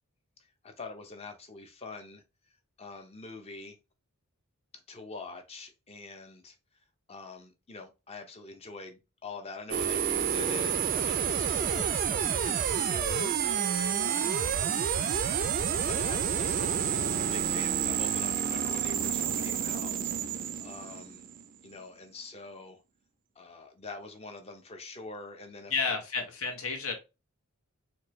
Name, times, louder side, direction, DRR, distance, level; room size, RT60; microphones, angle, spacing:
voice 1, 0.4-2.2 2.8-3.8 4.9-6.6 7.1-14.5 15.7-21.2 21.6-22.8 23.4-25.9, left 3 dB, 30° left, 0.6 m, -44 dB
sound 1, 9.7-21.7, right 8 dB, 40° right, 0.3 m, -29 dB
voice 2, 25.7-26.9, left 5 dB, 65° left, 1.0 m, -31 dB
4.3 x 2.2 x 3.1 m
head